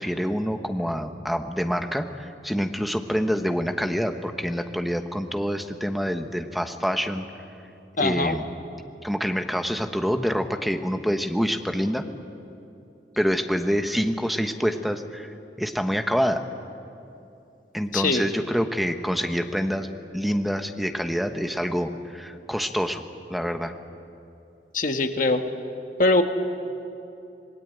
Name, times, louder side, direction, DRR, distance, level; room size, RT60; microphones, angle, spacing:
voice 1, 0.0-7.2 8.0-8.5 9.0-12.0 13.2-16.4 17.7-19.9 20.1-23.0 23.3-23.7, equal, ahead, 6 dB, 1.1 m, -26 dB
voice 2, 8.0-8.4 17.9-18.2 24.7-25.4 26.0-26.2, left 2 dB, 50° left, 6 dB, 1.4 m, -22 dB
26.5 x 20.0 x 9.1 m, 2.8 s
head